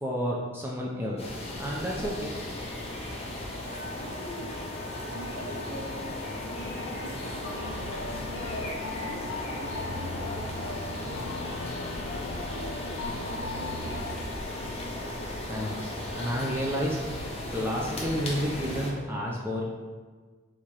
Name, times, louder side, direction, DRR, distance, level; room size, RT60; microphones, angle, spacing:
voice 1, 0.0-1.2 1.6-2.3 15.5-17.0 17.5-19.6, equal, 10° right, -3 dB, 0.4 m, -30 dB
sound 1, 1.2-18.9, left 1 dB, 30° left, 0.7 m, -36 dB
Wind instrument woodwind instrument, 3.6-16.7, left 1 dB, 45° right, 1.2 m, -44 dB
voice 2, 3.9-4.7 5.1-7.9 8.3-11.7 12.0-14.2, equal, 55° left, -5 dB, 1.2 m, -43 dB
sound 2, 6.3-6.9 7.4-14.2, left 3 dB, 85° left, 0.4 m, -39 dB
4.6 x 3.5 x 2.9 m, 1.4 s
head